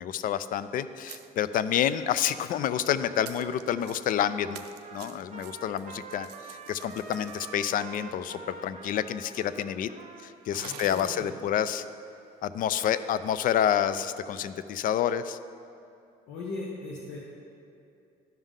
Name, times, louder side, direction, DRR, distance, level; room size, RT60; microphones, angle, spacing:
voice 1, 0.0-4.6 4.9-9.9 10.2-11.8 12.4-15.4, left 9 dB, 55° left, 14 dB, 0.4 m, -28 dB
sound 1, 0.5-0.6 1.0-1.7 2.1-2.6 3.1-4.2 4.5-8.4 9.3-9.4 9.5-9.6 10.5-11.2, right 11 dB, 80° right, 0.5 m, -49 dB
Trumpet, 2.9-11.2, right 5 dB, 50° right, 0.8 m, -47 dB
voice 2, 10.5-11.3 16.3-17.2, left 3 dB, 75° left, -4 dB, 1.1 m, -38 dB
12.0 x 5.4 x 3.7 m, 2.6 s
cardioid pair, 110°, 17 cm